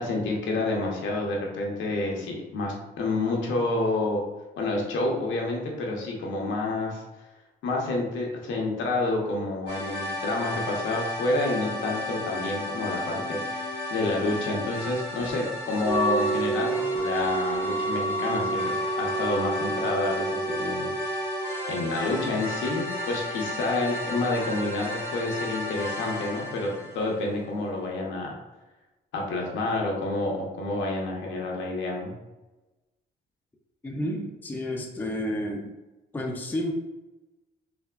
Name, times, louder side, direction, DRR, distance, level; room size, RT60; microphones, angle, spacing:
voice 1, 0.0-4.2 4.6-7.0 7.6-20.9 21.7-28.4 29.1-32.1, left 2 dB, 75° left, -1 dB, 0.7 m, -29 dB
sound 1, 9.7-27.5, left 1 dB, 70° right, 1.1 m, -34 dB
sound 2, 11.6-18.1, equal, 45° right, 1.1 m, -46 dB
Wind instrument woodwind instrument, 15.8-21.7, right 2 dB, 25° right, 0.8 m, -29 dB
voice 2, 33.8-35.7 36.1-36.7, left 1 dB, 10° left, 1 dB, 0.4 m, -31 dB
3.3 x 2.1 x 2.2 m, 1.1 s
cardioid pair, 90°, 20 cm